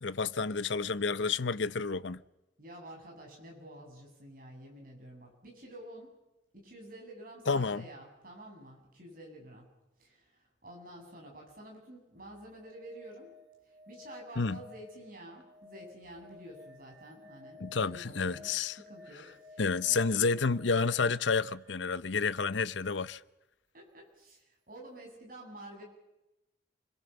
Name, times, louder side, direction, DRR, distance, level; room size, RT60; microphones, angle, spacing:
voice 1, 0.0-2.2 7.5-7.9 14.4-14.6 17.6-18.8 19.6-23.2, left 4 dB, 75° left, 0.8 m, -30 dB
voice 2, 2.6-6.1 6.5-9.7 10.0-13.3 13.6-20.0 23.7-25.8, right 1 dB, 50° right, 8.0 m, -50 dB
sound 1, 12.1-22.0 24.3-24.4, left 3 dB, 75° right, 5.3 m, -55 dB
28.5 x 22.0 x 7.1 m
head